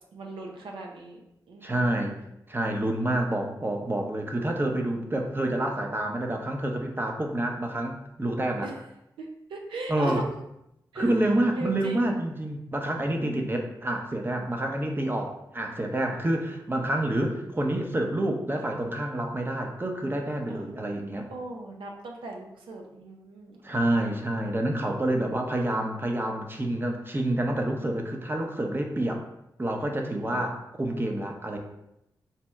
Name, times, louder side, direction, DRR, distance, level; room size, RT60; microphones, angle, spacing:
voice 1, 0.1-2.0 8.6-8.8 9.2-10.3 10.9-12.0 13.2-13.7 20.5-20.8 21.3-24.2 30.1-30.4, right 2 dB, 85° right, 1 dB, 0.6 m, -39 dB
voice 2, 1.6-2.2 2.5-8.7 9.9-10.2 10.9-21.2 23.6-29.2 29.6-31.6, right 1 dB, 25° right, 3 dB, 0.7 m, -28 dB
4.2 x 2.0 x 3.5 m, 0.85 s
supercardioid pair, 40°, 9 cm